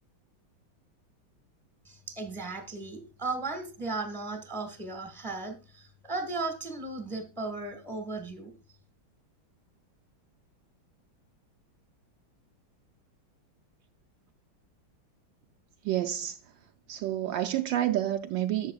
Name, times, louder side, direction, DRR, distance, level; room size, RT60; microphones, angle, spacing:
voice 1, 1.8-8.5, right 3 dB, ahead, 1.2 m, -36 dB
voice 2, 15.8-16.4 16.9-18.7, right 12 dB, 75° right, 1.2 m, -29 dB
11.5 x 7.1 x 2.3 m
omnidirectional pair, 2.2 m